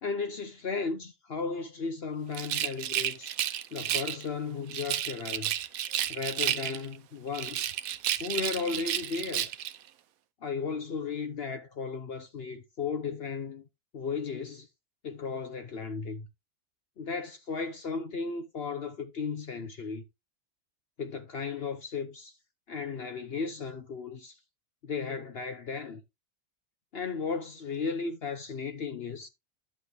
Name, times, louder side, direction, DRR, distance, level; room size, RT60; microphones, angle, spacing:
voice 1, 0.0-3.3 3.7-5.5 6.1-7.7 8.2-9.5 10.4-13.7 13.9-14.7 15.0-16.3 17.0-20.0 21.0-22.3 22.7-24.3 24.8-26.0 26.9-29.3, left 5 dB, 50° left, 1.0 m, -35 dB
Rattle, 2.3-4.2 4.7-7.0 7.3-9.8, right 11 dB, 85° right, 1.1 m, -32 dB
10.5 x 6.3 x 3.4 m
omnidirectional pair, 1.4 m